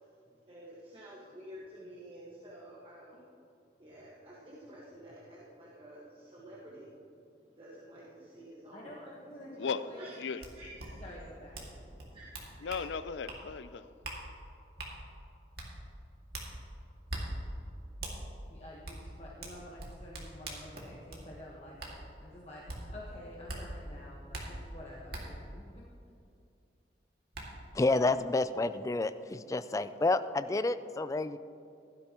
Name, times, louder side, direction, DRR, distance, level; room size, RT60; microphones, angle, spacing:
voice 1, 0.5-3.3 3.8-9.1 9.4-9.7 10.0-10.2 10.5-11.2 11.7-12.7, right 1 dB, 30° right, 1.5 m, -51 dB
voice 2, 8.7-10.0 11.0-11.6 18.5-25.9, left 1 dB, 35° left, 1.2 m, -49 dB
voice 3, 9.6-10.5 12.6-13.9, left 5 dB, 90° left, 0.5 m, -37 dB
sound 1, 10.4-10.5 10.8-10.9 11.5-11.7 12.0-12.8 13.3-13.4 14.0-14.2 14.8-14.9 15.5-15.7 16.3-16.5 17.1-17.2 18.0-18.1 18.8-19.0 19.4-21.2 21.8-21.9 22.7-22.8 23.5-23.6 24.3-24.4 25.1-25.2 26.7-26.8 27.3-27.4, right 2 dB, 60° right, 2.1 m, -41 dB
voice 4, 27.7-31.4, left 2 dB, 20° left, 0.3 m, -29 dB
16.0 x 12.0 x 3.0 m
head